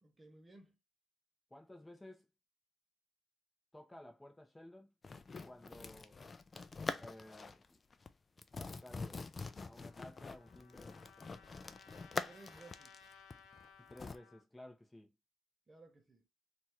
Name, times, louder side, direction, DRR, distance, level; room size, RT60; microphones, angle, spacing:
voice 1, 0.0-0.8 12.3-13.1 15.7-16.2, right 2 dB, 25° right, 0.7 m, -58 dB
voice 2, 1.5-2.3 3.7-4.9 5.4-6.2 7.0-7.8 8.5-9.2 9.6-11.3 13.9-15.1, left 1 dB, 10° left, 0.9 m, -55 dB
sound 1, 5.0-7.7 7.9-8.1 8.4-14.2, left 4 dB, 30° left, 0.4 m, -45 dB
Trumpet, 9.7-14.4, left 6 dB, 85° left, 0.8 m, -61 dB
3.0 x 2.4 x 4.3 m
cardioid pair, 90°, 0 cm